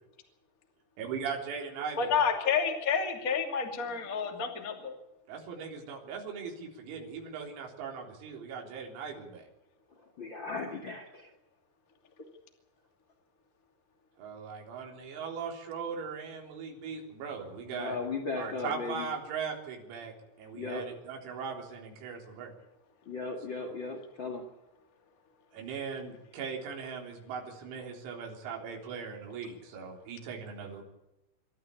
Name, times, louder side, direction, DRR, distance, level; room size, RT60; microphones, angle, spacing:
voice 1, 1.0-2.3 5.3-9.4 14.2-18.0 18.4-20.1 20.4-22.5 25.5-30.8, right 6 dB, 85° right, 1 dB, 6.4 m, -39 dB
voice 2, 2.0-4.9, left 6 dB, 30° left, 3 dB, 1.7 m, -29 dB
voice 3, 10.2-11.3 17.6-19.1 20.5-20.8 23.0-24.4, left 4 dB, 55° left, 4 dB, 1.3 m, -36 dB
26.0 x 13.5 x 8.5 m, 0.92 s
omnidirectional pair, 6.0 m